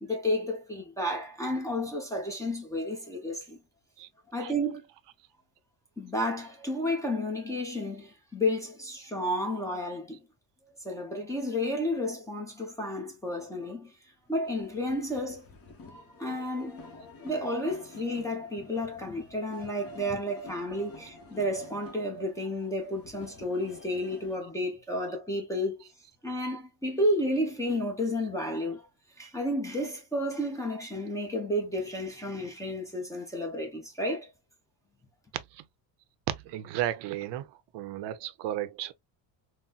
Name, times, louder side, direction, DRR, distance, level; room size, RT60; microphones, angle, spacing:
voice 1, 0.0-3.6 4.3-4.8 6.0-10.2 10.6-13.9 14.3-15.5 15.8-25.9 26.2-28.9 29.2-34.3, left 1 dB, 5° left, 0.6 m, -32 dB
sound 1, 14.4-24.4, left 3 dB, 35° left, 0.9 m, -50 dB
voice 2, 36.3-37.5 37.7-38.9, right 13 dB, 75° right, 0.6 m, -33 dB
3.9 x 2.0 x 2.2 m
cardioid pair, 160°, 43 cm